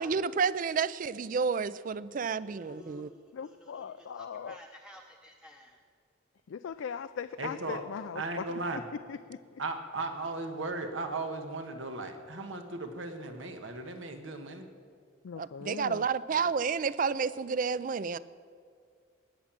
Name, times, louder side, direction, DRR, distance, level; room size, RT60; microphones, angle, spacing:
voice 1, 0.0-3.1 15.4-18.2, right 5 dB, 45° right, 17 dB, 0.4 m, -30 dB
voice 2, 2.4-5.8, left 1 dB, 5° right, 1 dB, 0.7 m, -53 dB
voice 3, 3.3-4.6 6.5-8.5 8.7-8.8 9.1-9.6 15.2-16.1, left 7 dB, 80° left, 11 dB, 0.4 m, -40 dB
voice 4, 7.4-7.8 8.1-8.8 9.6-14.7, right 3 dB, 85° right, 6 dB, 1.4 m, -36 dB
19.0 x 7.3 x 7.4 m, 2.2 s
head